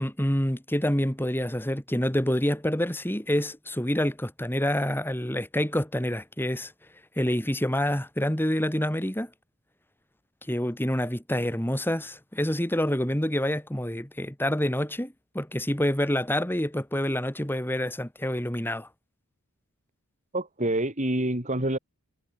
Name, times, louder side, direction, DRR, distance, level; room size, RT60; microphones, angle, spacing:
voice 1, 0.0-6.7 7.2-9.3 10.5-18.9, left 1 dB, 10° left, 2.5 m, -27 dB
voice 2, 20.3-21.8, right 1 dB, 35° right, 3.9 m, -27 dB
head